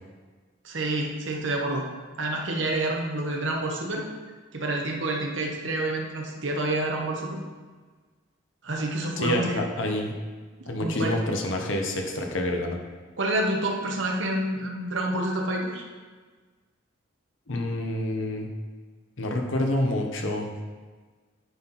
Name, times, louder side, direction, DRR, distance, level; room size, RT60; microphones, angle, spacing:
voice 1, 0.6-1.9 2.2-4.1 4.5-7.4 8.6-9.7 10.6-11.2 13.2-15.8, right 1 dB, 70° right, 1 dB, 1.1 m, -28 dB
voice 2, 9.2-10.1 10.6-12.8 17.5-18.5 19.2-20.5, left 1 dB, 75° left, 2 dB, 1.0 m, -27 dB
9.4 x 4.4 x 4.1 m, 1.4 s
head